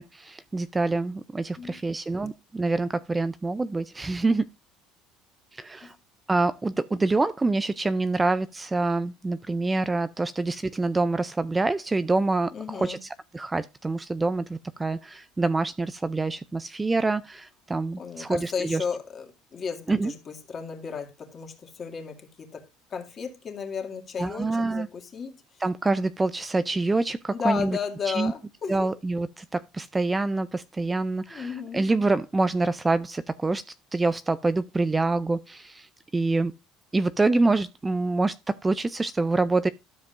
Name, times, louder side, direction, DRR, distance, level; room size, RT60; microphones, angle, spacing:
voice 1, 0.0-4.5 5.5-6.0 6.3-18.8 19.9-20.1 24.2-24.9 25.6-27.8 28.0-28.3 28.7-33.6 33.9-36.5 36.9-39.7, right 3 dB, 10° right, 0.3 m, -26 dB
voice 2, 12.5-13.0 18.0-22.6 22.9-25.4 27.3-28.9 31.3-31.8, left 6 dB, 30° left, 2.2 m, -34 dB
12.5 x 7.4 x 2.5 m
cardioid pair, 150°, 0 cm